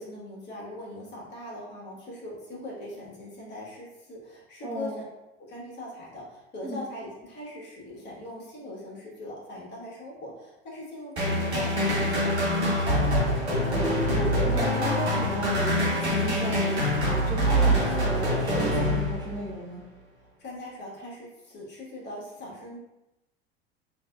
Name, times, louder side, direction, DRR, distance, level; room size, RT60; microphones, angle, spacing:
voice 1, 0.0-5.0 5.4-13.6 20.4-22.8, left 1 dB, 35° left, -5 dB, 1.3 m, -41 dB
voice 2, 4.6-5.0 6.6-6.8 14.1-19.8, equal, 15° right, -7 dB, 0.9 m, -35 dB
sound 1, 11.2-19.5, equal, 80° right, 1.0 m, -25 dB
3.2 x 2.7 x 2.3 m, 0.93 s
figure-of-eight pair, 75°, 32 cm